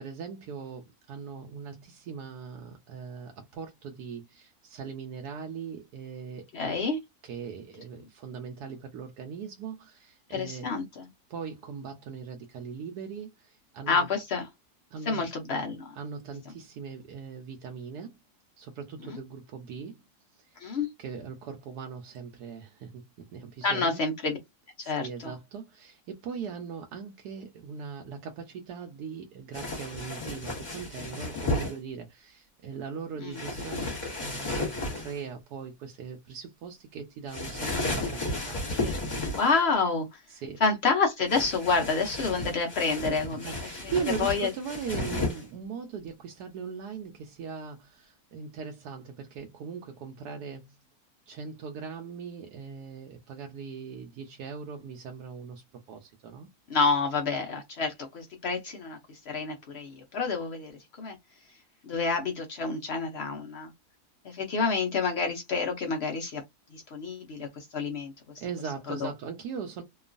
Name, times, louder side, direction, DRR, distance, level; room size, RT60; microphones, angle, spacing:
voice 1, 0.0-6.8 7.2-10.7 11.3-14.1 14.9-15.3 15.9-18.2 18.6-20.0 20.3-20.6 21.0-24.0 24.8-33.9 34.2-38.6 40.3-40.6 43.3-50.8 51.3-56.5 68.4-69.8, right 6 dB, 80° right, 1.1 m, -40 dB
voice 2, 6.5-7.0 10.3-11.0 13.9-14.5 15.1-15.9 19.1-19.2 20.6-20.9 23.6-24.4 24.9-25.3 33.2-33.4 38.8-40.2 40.6-43.5 43.8-43.9 44.2-44.5 56.7-60.7 61.0-61.2 61.8-63.7 64.2-66.4 66.7-68.1 69.0-69.1, left 4 dB, 65° left, 0.6 m, -28 dB
sound 1, 29.5-31.7 33.3-35.2 37.3-39.6 41.3-45.4, left 2 dB, 30° left, 1.2 m, -33 dB
3.0 x 2.2 x 2.5 m
omnidirectional pair, 1.7 m